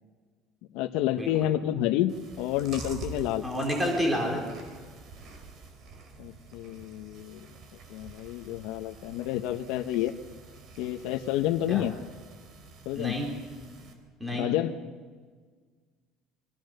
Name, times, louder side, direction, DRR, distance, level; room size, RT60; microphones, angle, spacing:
voice 1, 0.7-3.4 6.2-7.5 7.9-10.1 10.8-11.9 12.8-13.2 14.3-14.8, left 13 dB, 70° left, 5 dB, 1.2 m, -29 dB
Chewing mastication, 2.1-13.9, right 4 dB, 40° right, 4.5 m, -47 dB
voice 2, 3.4-4.4 11.7-11.8 12.9-13.3 14.2-14.5, equal, 5° right, 0 dB, 4.2 m, -29 dB
27.0 x 24.5 x 6.8 m, 1.5 s
cardioid pair, 175°, 0 cm